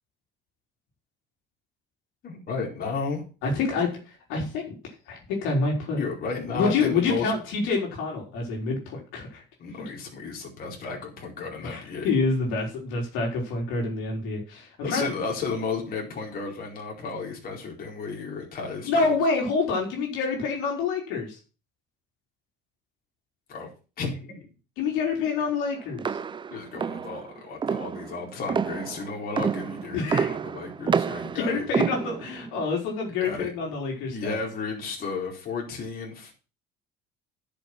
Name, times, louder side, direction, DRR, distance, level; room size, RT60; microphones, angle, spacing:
voice 1, 2.2-3.2 6.0-7.3 9.6-12.1 14.8-19.2 23.5-23.7 24.0-24.5 26.5-31.6 33.2-33.5 34.1-36.3, left 4 dB, 50° left, -1 dB, 4.6 m, -33 dB
voice 2, 3.4-4.8 5.1-6.0 6.5-9.4 11.6-15.1 18.8-21.4 24.8-26.2 29.9-30.3 31.3-34.4, left 4 dB, 80° left, 0 dB, 4.1 m, -27 dB
sound 1, 26.0-32.5, right 6 dB, 25° right, 0.6 m, -29 dB
10.5 x 7.1 x 6.1 m, 0.35 s
supercardioid pair, 100°, 20 cm